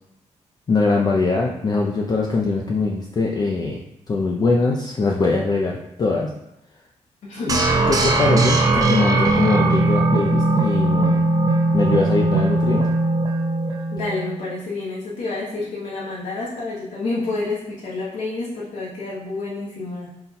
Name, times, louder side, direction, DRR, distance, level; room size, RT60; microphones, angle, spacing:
voice 1, 0.7-3.8 4.1-6.3 7.4-7.6 7.9-11.2 11.7-12.9, left 3 dB, 35° left, -1 dB, 0.4 m, -22 dB
voice 2, 7.2-7.6 13.9-20.1, left 3 dB, 90° left, -6 dB, 0.8 m, -29 dB
sound 1, 7.5-14.4, right 2 dB, 30° right, 0.5 m, -19 dB
3.9 x 2.2 x 4.1 m, 0.84 s
cardioid pair, 105°, 12 cm